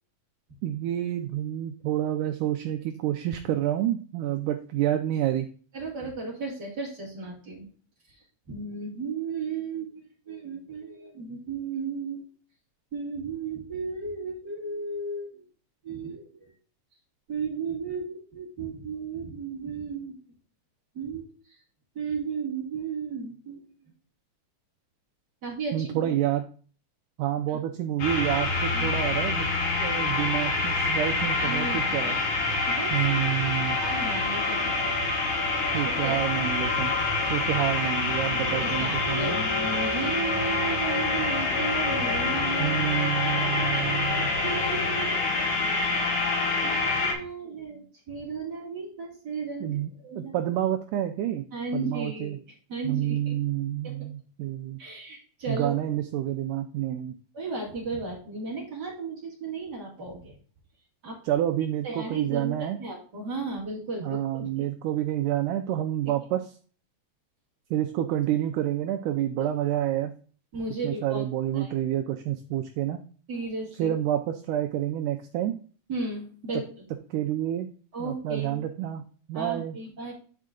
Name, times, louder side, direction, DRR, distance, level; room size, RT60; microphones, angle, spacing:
voice 1, 0.6-5.5 25.7-26.4 27.2-29.5 29.8-32.2 32.9-33.8 35.7-36.9 37.3-39.4 42.6-44.3 49.6-49.9 50.2-51.4 51.7-52.4 52.8-54.8 55.5-57.2 61.3-62.8 64.0-66.5 67.7-70.1 70.8-73.0 73.8-75.6 77.1-77.7 78.0-79.8, right 12 dB, 80° right, 5 dB, 1.9 m, -28 dB
voice 2, 5.7-7.7 8.1-12.3 12.9-15.4 15.8-16.5 17.3-20.2 20.9-21.6 21.9-23.7 25.4-26.1 27.5-27.6 28.7-29.0 31.4-31.9 32.7-33.0 33.8-34.9 35.8-36.2 38.5-42.8 43.7-45.2 46.6-50.4 51.5-52.4 52.7-53.4 53.8-53.9 54.8-55.8 57.3-60.4 61.0-61.2 61.8-64.7 69.4-69.5 70.5-71.2 71.5-71.7 73.3-73.9 75.9-76.7 77.9-78.7 79.3-80.1, right 4 dB, 35° right, -4 dB, 2.1 m, -35 dB
sound 1, 28.0-47.1, left 3 dB, 70° left, 2.9 m, -26 dB
9.4 x 4.4 x 3.7 m, 0.42 s
omnidirectional pair, 4.0 m